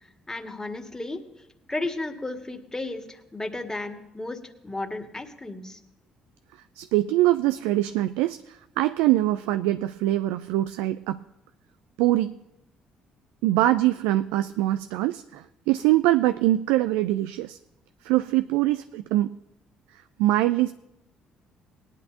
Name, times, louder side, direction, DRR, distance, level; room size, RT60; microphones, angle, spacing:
voice 1, 0.3-1.2 1.7-5.8, left 2 dB, 15° left, 3 dB, 2.0 m, -34 dB
voice 2, 6.8-11.2 12.0-12.3 13.4-17.6 18.0-19.3 20.2-20.7, right 15 dB, 75° right, 11 dB, 0.4 m, -23 dB
20.5 x 10.5 x 2.8 m, 0.87 s
hypercardioid pair, 50°, 4 cm